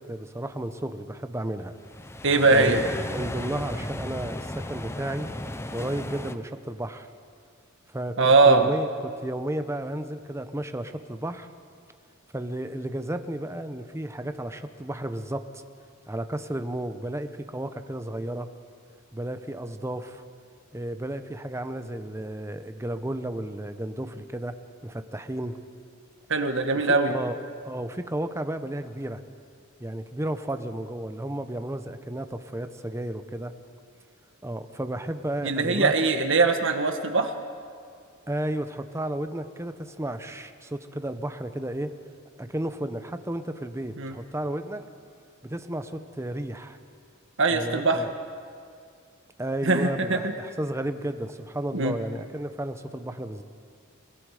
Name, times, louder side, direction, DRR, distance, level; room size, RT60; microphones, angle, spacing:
voice 1, 0.0-1.7 2.5-5.3 5.7-7.1 7.9-11.5 12.3-15.6 16.1-18.5 19.1-20.2 20.7-24.5 24.8-25.6 26.7-27.4 27.6-29.2 29.8-33.5 34.4-36.1 38.3-41.9 42.4-44.9 45.4-46.8 47.5-48.1 49.4-53.4, right 1 dB, 15° right, 9 dB, 0.9 m, -33 dB
sound 1, 1.8-6.4, left 1 dB, 10° left, 0.6 m, -35 dB
voice 2, 2.2-2.8 8.2-8.7 26.3-27.1 35.4-37.3 44.0-44.2 47.4-48.0 49.6-50.3 51.7-51.9, right 3 dB, 65° right, 6 dB, 1.6 m, -21 dB
29.5 x 17.5 x 5.0 m, 2.3 s
head